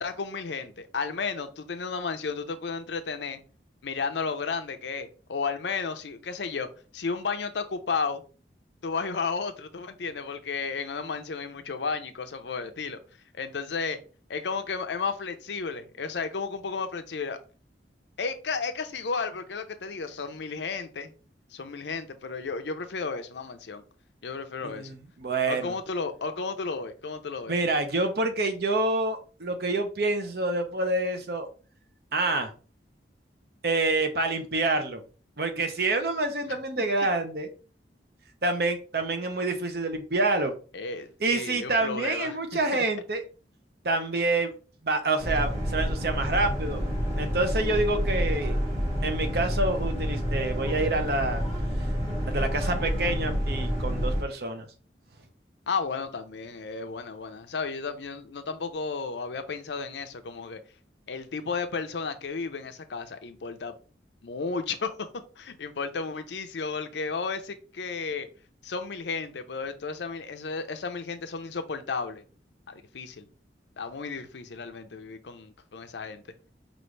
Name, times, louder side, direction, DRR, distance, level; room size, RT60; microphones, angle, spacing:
voice 1, 0.0-3.4 3.8-6.7 6.9-8.2 8.8-13.0 13.3-14.0 14.3-17.4 18.2-21.1 21.5-23.8 24.2-24.9 25.5-27.5 36.5-36.6 40.7-42.4 42.7-42.8 55.7-60.6 61.1-63.7 64.2-64.9 65.4-68.3 68.6-72.2 72.7-73.3 73.8-76.2, left 4 dB, 80° left, 0.6 m, -33 dB
voice 2, 24.6-25.7 27.5-31.5 32.1-32.5 33.6-35.0 35.4-37.5 38.4-40.5 41.2-43.2 43.8-44.5 44.8-46.8 47.2-48.6 49.0-51.4 52.3-54.6, right 2 dB, 60° right, 0.8 m, -27 dB
Boat Water vehicle, 45.2-54.2, equal, 40° right, 1.7 m, -28 dB
5.3 x 2.5 x 3.2 m
head